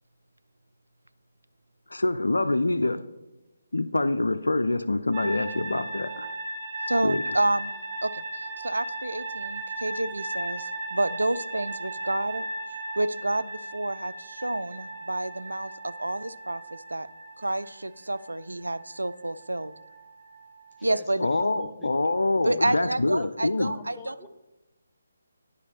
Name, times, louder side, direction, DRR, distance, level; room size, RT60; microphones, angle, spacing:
voice 1, 1.9-3.0 3.7-6.3 7.0-7.2 21.2-23.7, left 2 dB, 80° left, 10 dB, 0.4 m, -25 dB
sound 1, 5.1-20.9, right 2 dB, 25° right, 1.5 m, -37 dB
voice 2, 6.9-7.7 8.0-12.5 13.0-16.6 16.9-17.1 17.4-19.7 20.8-21.3 22.4-24.1, right 1 dB, 90° right, 15 dB, 0.4 m, -29 dB
voice 3, 20.8-21.9 22.4-22.8 23.2-24.3, left 4 dB, 15° left, 5 dB, 0.5 m, -47 dB
9.8 x 5.1 x 4.2 m, 0.99 s
figure-of-eight pair, 150°, 0 cm